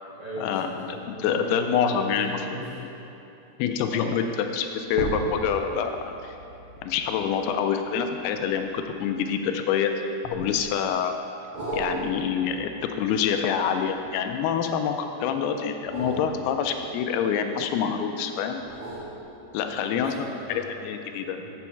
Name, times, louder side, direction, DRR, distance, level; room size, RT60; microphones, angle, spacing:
voice 1, 0.2-2.8 3.9-4.2 7.3-7.4 15.2-15.4 19.5-20.7 21.3-21.5, equal, 45° right, -11 dB, 2.3 m, -37 dB
voice 2, 1.1-2.4 2.8-2.9 3.6-6.4 6.8-11.2 11.7-12.7 13.0-18.6 19.5-20.1 20.5-21.4, left 7 dB, 85° left, 6 dB, 2.5 m, -26 dB
sound 1, 4.9-9.5 10.2-10.9 11.5-14.5 15.7-17.8 18.5-20.0 20.4-20.5, right 2 dB, 80° right, 1.2 m, -38 dB
8.4 x 7.1 x 4.5 m, 2.8 s
omnidirectional pair, 4.5 m